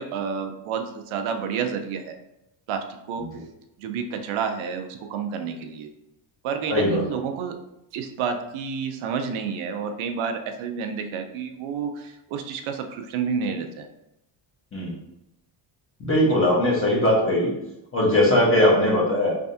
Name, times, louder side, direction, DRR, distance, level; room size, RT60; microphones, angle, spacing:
voice 1, 0.0-2.2 2.7-3.3 3.8-5.9 6.4-7.6 7.9-13.9 16.3-16.5, right 6 dB, 75° right, 6 dB, 0.6 m, -30 dB
voice 2, 6.7-7.0 14.7-14.9 16.0-17.5 17.9-19.3, left 1 dB, 25° left, -3 dB, 1.1 m, -20 dB
3.5 x 3.3 x 2.7 m, 0.85 s
cardioid pair, 145°, 50 cm